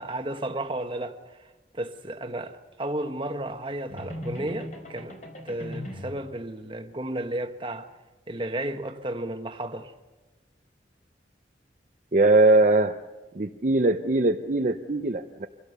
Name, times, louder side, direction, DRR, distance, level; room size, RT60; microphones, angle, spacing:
voice 1, 0.0-5.2 5.4-7.9 8.3-9.9, right 1 dB, 30° right, 1.2 m, -33 dB
sound 1, 3.9-6.3, left 1 dB, 45° left, 4.3 m, -38 dB
voice 2, 12.1-13.0 13.4-15.5, right 2 dB, 45° right, 0.7 m, -21 dB
25.0 x 17.0 x 6.8 m
head